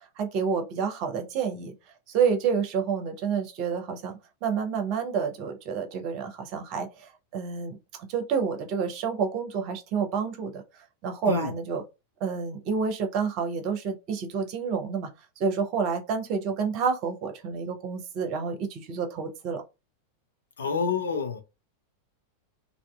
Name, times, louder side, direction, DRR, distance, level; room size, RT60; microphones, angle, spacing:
voice 1, 0.2-1.7 2.1-7.8 8.1-10.6 11.0-11.8 12.2-15.1 15.4-19.6, right 6 dB, 40° right, 0.6 m, -29 dB
voice 2, 20.6-21.4, left 5 dB, 70° left, 0.5 m, -28 dB
2.6 x 2.5 x 2.2 m
figure-of-eight pair, 90°, 0 cm